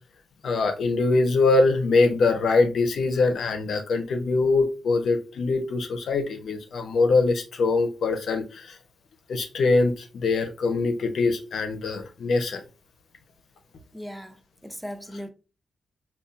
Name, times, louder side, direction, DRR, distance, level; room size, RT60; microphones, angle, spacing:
voice 1, 0.4-8.8 9.3-12.6, left 3 dB, 70° left, 0.7 m, -23 dB
voice 2, 13.9-15.3, equal, 5° right, 0.5 m, -38 dB
5.4 x 2.4 x 2.4 m
wide cardioid pair, 145°, 0 cm